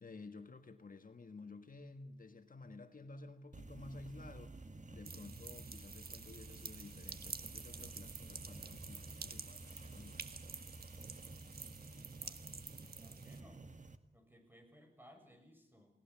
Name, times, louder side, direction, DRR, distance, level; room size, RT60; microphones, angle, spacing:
voice 1, 0.0-4.5 4.9-10.3, left 3 dB, 60° left, 7 dB, 1.5 m, -53 dB
sound 1, 3.5-14.0, right 2 dB, 50° right, 1.8 m, -52 dB
sound 2, 5.0-13.4, right 5 dB, 70° right, 1.4 m, -50 dB
voice 2, 11.8-13.7 14.1-16.0, equal, 15° right, 4 dB, 7.1 m, -63 dB
29.0 x 18.5 x 7.3 m, 0.83 s
wide cardioid pair, 80°, 16 cm